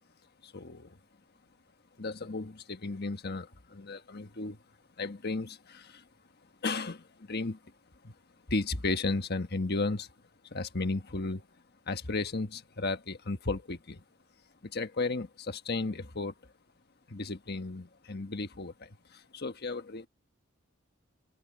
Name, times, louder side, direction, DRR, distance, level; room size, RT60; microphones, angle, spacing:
voice 1, 0.4-1.0 2.0-4.6 5.0-6.0 6.6-7.6 8.0-8.1 8.5-10.1 10.4-11.5 11.9-14.0 14.6-16.3 17.1-20.1, left 3 dB, 50° left, 1.4 m, -34 dB
open air
head